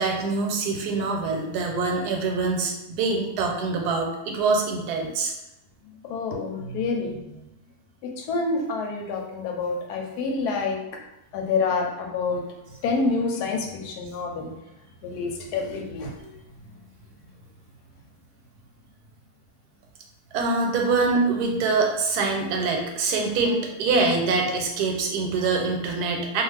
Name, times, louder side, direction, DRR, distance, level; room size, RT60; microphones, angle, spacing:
voice 1, 0.0-5.3 20.3-26.4, right 3 dB, 85° right, 1 dB, 1.1 m, -24 dB
voice 2, 6.1-7.5 8.0-10.8 11.3-12.4 12.8-14.5 15.0-16.3, left 4 dB, 85° left, 2 dB, 1.1 m, -27 dB
2.4 x 2.4 x 3.2 m, 0.91 s
omnidirectional pair, 1.6 m